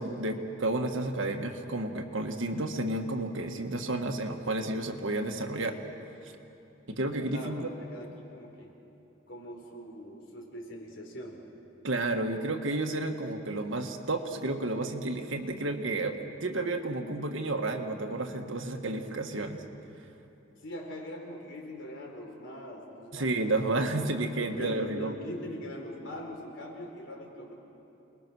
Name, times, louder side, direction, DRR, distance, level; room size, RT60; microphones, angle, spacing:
voice 1, 0.0-5.8 6.2-6.3 6.9-7.7 11.8-19.6 23.1-25.1, right 2 dB, 75° right, 4 dB, 1.7 m, -31 dB
voice 2, 7.3-8.7 9.3-11.4 20.6-23.6 24.5-27.5, left 1 dB, 65° left, 0 dB, 4.3 m, -42 dB
28.5 x 21.0 x 6.3 m, 2.9 s
head